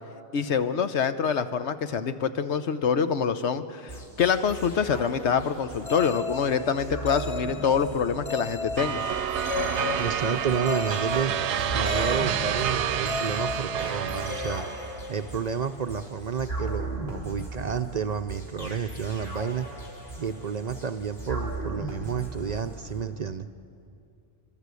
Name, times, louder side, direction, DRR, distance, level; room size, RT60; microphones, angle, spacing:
voice 1, 0.3-9.0, left 6 dB, 85° left, 10 dB, 1.2 m, -26 dB
sound 1, 3.9-23.1, right 2 dB, 65° left, 4.1 m, -38 dB
sound 2, 5.9-15.7, left 3 dB, 45° left, 0.3 m, -36 dB
sound 3, 8.8-15.0, right 9 dB, 85° right, 1.0 m, -29 dB
voice 2, 10.0-11.3 11.7-14.7 15.1-19.7 20.2-23.5, right 6 dB, 50° right, 8 dB, 0.6 m, -30 dB
29.5 x 12.5 x 8.3 m, 2.6 s
omnidirectional pair, 1.1 m